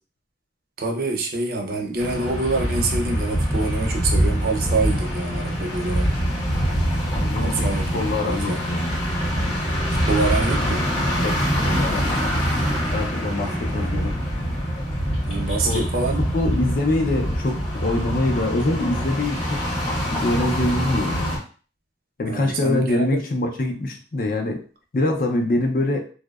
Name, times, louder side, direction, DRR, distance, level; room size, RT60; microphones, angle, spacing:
voice 1, 0.8-6.1 7.4-8.6 10.1-10.9 13.4-13.9 15.2-16.2 22.3-23.2, right 3 dB, 55° right, 1 dB, 0.5 m, -26 dB
sound 1, 2.0-21.4, equal, 30° left, 0.9 m, -24 dB
voice 2, 7.1-9.0 11.2-12.5 12.9-14.2 15.4-15.9 16.3-19.6 20.1-21.4 22.2-24.6 24.9-26.0, left 2 dB, 50° left, 3 dB, 0.4 m, -25 dB
2.6 x 2.0 x 2.3 m, 0.39 s
head